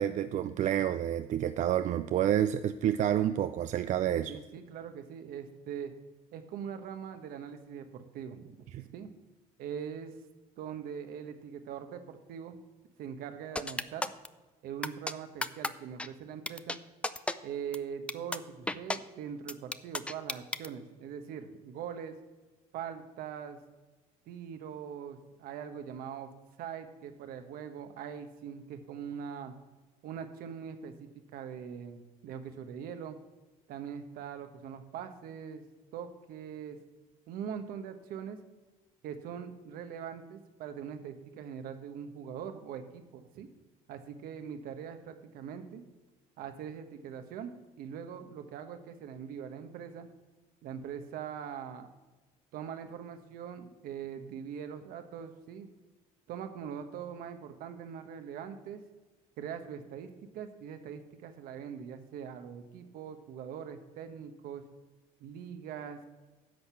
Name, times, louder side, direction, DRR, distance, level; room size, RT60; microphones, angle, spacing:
voice 1, 0.0-4.3 8.7-8.8, right 10 dB, 55° right, 11 dB, 0.4 m, -29 dB
voice 2, 4.3-5.9 6.3-8.6 8.9-9.1 9.6-10.2 10.6-12.6 13.0-14.1 14.6-16.8 17.4-22.1 22.7-23.6 24.3-26.3 26.6-29.5 30.0-33.2 33.7-35.7 35.9-36.8 37.3-38.4 39.0-43.5 43.9-45.9 46.4-47.5 47.8-50.1 50.6-51.9 52.5-55.7 56.3-58.8 59.4-64.6 65.2-66.0, right 8 dB, 75° right, 8 dB, 1.2 m, -42 dB
sound 1, 13.6-14.3 14.8-15.1 15.4-15.7 16.0-16.1 16.5-16.8 17.0-17.3 17.7-17.8 18.1-18.4 18.7-19.0 19.5-20.7, left 2 dB, 10° left, 0.4 m, -32 dB
10.5 x 6.6 x 5.8 m, 1.2 s
cardioid pair, 105°, 15 cm